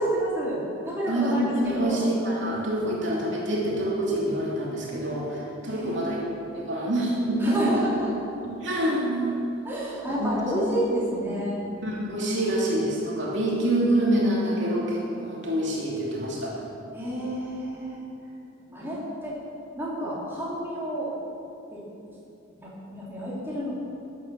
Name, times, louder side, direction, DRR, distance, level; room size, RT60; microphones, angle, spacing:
voice 1, 0.0-2.1 5.7-6.2 7.4-8.1 9.6-11.6 16.9-18.0 18.7-19.4 19.8-21.1 21.7-21.8 22.1-22.2 22.6-23.7, equal, 10° right, -8 dB, 3.6 m, -29 dB
voice 2, 1.1-6.2 6.5-7.7 8.4-9.4 10.2-10.4 11.8-16.5 18.7-18.9, right 1 dB, 65° right, -4 dB, 2.9 m, -26 dB
14.0 x 10.0 x 7.0 m, 2.7 s
head